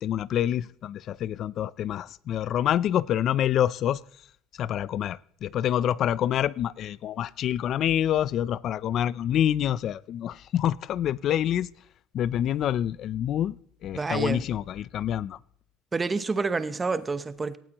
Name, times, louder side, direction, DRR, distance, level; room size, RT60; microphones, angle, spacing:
voice 1, 0.0-4.0 4.6-11.7 12.1-13.6 13.8-15.4, left 11 dB, 45° left, 0.4 m, -27 dB
voice 2, 13.9-14.4 15.9-17.6, right 4 dB, 15° right, 0.8 m, -28 dB
18.5 x 17.0 x 3.0 m
cardioid pair, 150°, 0 cm